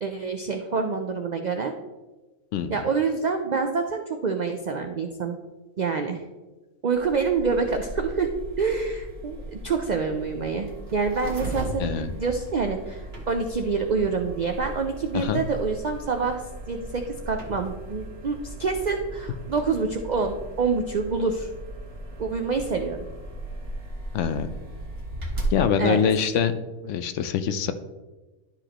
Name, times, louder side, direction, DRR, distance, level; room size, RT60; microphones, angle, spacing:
voice 1, 0.0-1.7 2.7-5.4 5.8-6.2 6.8-8.3 8.6-16.4 16.7-21.5 22.2-23.0 25.8-26.0, right 4 dB, 80° right, 5 dB, 0.4 m, -27 dB
sound 1, 6.9-25.6, right 1 dB, 45° right, 1.6 m, -37 dB
voice 2, 24.1-24.5 25.5-26.5 26.8-27.7, left 7 dB, 70° left, 10 dB, 0.8 m, -24 dB
11.5 x 4.9 x 2.9 m, 1.2 s
omnidirectional pair, 1.4 m